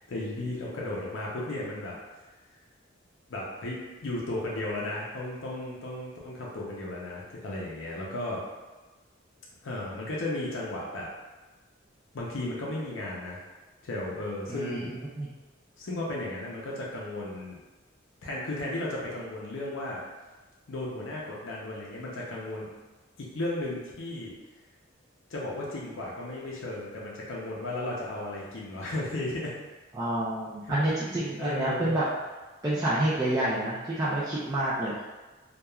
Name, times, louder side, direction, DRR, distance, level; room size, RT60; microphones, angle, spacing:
voice 1, 0.0-1.9 3.3-8.4 9.6-11.1 12.1-13.5 13.8-14.9 15.8-17.6 18.2-20.0 20.7-22.7 23.2-24.4 25.3-29.6 31.4-31.9, left 1 dB, 70° left, -5 dB, 0.5 m, -34 dB
voice 2, 14.5-15.3 29.9-32.1 32.6-35.0, right 1 dB, 15° right, -11 dB, 0.3 m, -28 dB
2.9 x 2.3 x 2.3 m, 1.2 s
head